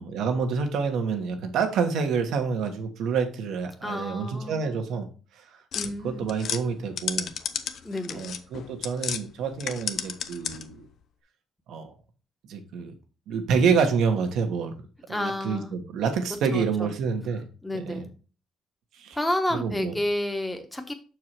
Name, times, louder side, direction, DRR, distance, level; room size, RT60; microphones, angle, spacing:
voice 1, 0.0-5.6 6.0-7.3 8.1-10.8 11.7-11.9 12.5-12.9 13.3-14.7 15.1-17.4 17.7-18.0 18.9-19.2 19.5-19.9, right 5 dB, 80° right, 6 dB, 1.3 m, -27 dB
voice 2, 3.8-4.8 5.7-6.3 7.8-8.3 15.1-15.7 16.5-16.9 17.6-18.1 19.1-20.9, left 1 dB, 10° left, 5 dB, 1.1 m, -30 dB
sound 1, 5.7-9.2 9.5-10.8, left 8 dB, 70° left, 0.7 m, -33 dB
6.3 x 4.7 x 4.5 m, 0.37 s
cardioid pair, 90°, 0 cm